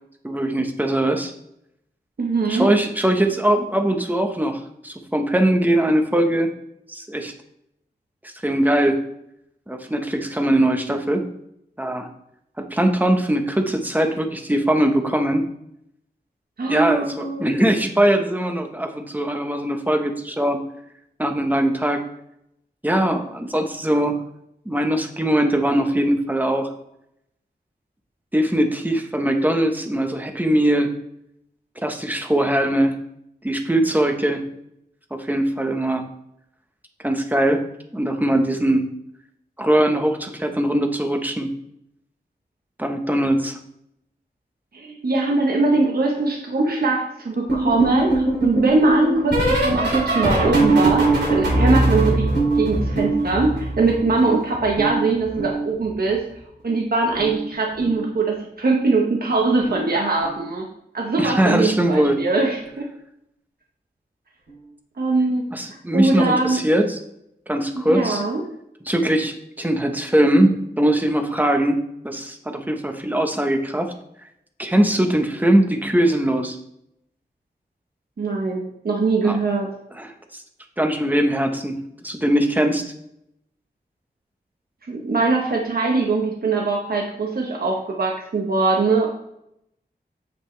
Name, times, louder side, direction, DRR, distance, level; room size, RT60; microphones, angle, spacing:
voice 1, 0.2-1.3 2.5-6.5 6.9-7.3 8.2-9.0 9.7-11.3 11.8-12.1 12.6-15.4 16.7-20.6 21.2-22.0 22.8-24.2 24.6-26.7 28.3-30.9 31.8-33.0 33.4-34.4 35.1-36.0 37.0-37.6 37.9-38.8 39.6-41.5 42.8-43.6 61.2-62.2 65.5-67.0 67.5-68.2 68.9-73.9 74.6-76.6 79.2-79.4 79.9-80.4 80.8-81.7 82.0-82.8, right 1 dB, 10° right, 5 dB, 1.0 m, -21 dB
voice 2, 2.2-2.6 16.6-17.5 44.7-56.2 56.6-60.6 60.9-62.9 65.0-65.5 65.9-66.6 67.7-68.4 78.2-79.7 84.9-89.1, right 3 dB, 60° right, -1 dB, 1.2 m, -21 dB
sound 1, 47.5-54.3 54.5-56.1 57.1-57.5 57.7-58.1 59.6-59.9 60.2-60.5 62.0-62.1, right 2 dB, 80° right, 2.9 m, -21 dB
8.1 x 6.0 x 3.3 m, 0.78 s
wide cardioid pair, 95°, 18 cm